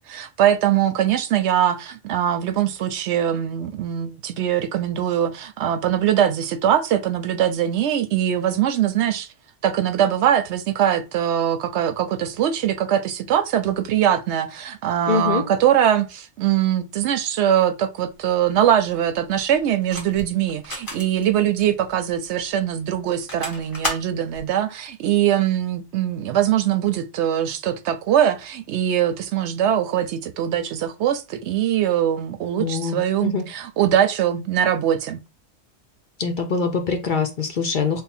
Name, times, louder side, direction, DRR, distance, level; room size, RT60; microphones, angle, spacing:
voice 1, 0.1-9.3 9.6-35.2, right 10 dB, 75° right, 0.8 m, -22 dB
voice 2, 15.1-15.4 32.6-33.4 36.2-38.0, left 5 dB, 50° left, 0.7 m, -24 dB
sound 1, 18.1-24.5, left 1 dB, 20° left, 1.3 m, -34 dB
3.6 x 2.1 x 4.1 m
omnidirectional pair, 1.2 m